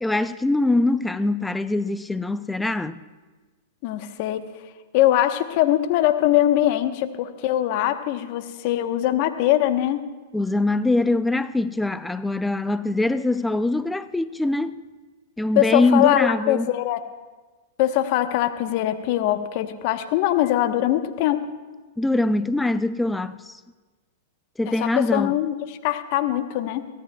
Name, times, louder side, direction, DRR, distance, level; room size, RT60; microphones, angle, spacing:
voice 1, 0.0-3.0 10.3-14.7 15.4-16.8 22.0-23.6 24.6-25.4, left 2 dB, 5° left, 0.4 m, -23 dB
voice 2, 3.8-4.4 4.9-10.0 15.6-17.0 17.8-21.5 24.7-25.6 25.8-26.9, left 13 dB, 50° left, 1.1 m, -22 dB
23.0 x 17.0 x 2.3 m
hypercardioid pair, 115°, 0 cm